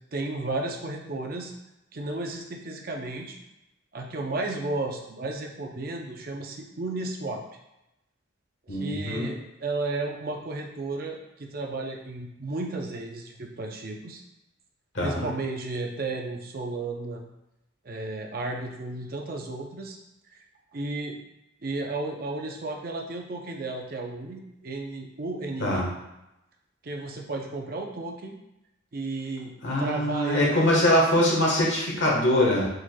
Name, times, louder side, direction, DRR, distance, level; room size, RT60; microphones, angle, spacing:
voice 1, 0.1-1.5 1.9-3.4 3.9-7.4 8.7-14.2 15.0-17.2 17.8-20.0 20.3-20.4 20.7-21.2 21.6-25.8 26.8-28.4 28.9-30.8, right 2 dB, 45° right, 2 dB, 0.5 m, -33 dB
voice 2, 8.7-9.3 14.9-15.3 25.6-25.9 29.6-32.7, left 1 dB, 65° left, -3 dB, 1.3 m, -23 dB
4.8 x 4.3 x 2.3 m, 0.90 s
head